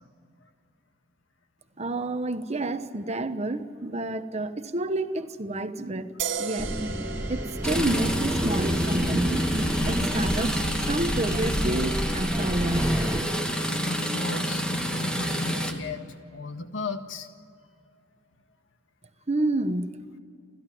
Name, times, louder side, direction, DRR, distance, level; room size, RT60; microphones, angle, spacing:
voice 1, 1.8-6.7 7.3-9.4 9.9-10.6 10.9-13.0 19.3-20.0, right 2 dB, 35° right, 1.1 m, -29 dB
sound 1, 6.2-13.5, right 6 dB, 85° right, 1.9 m, -39 dB
sound 2, 6.6-13.2, equal, 10° right, 0.9 m, -29 dB
sound 3, 7.6-15.7, equal, 5° left, 2.0 m, -28 dB
voice 2, 13.8-16.0 16.3-17.3, left 3 dB, 75° left, 1.7 m, -35 dB
29.5 x 14.0 x 9.3 m
head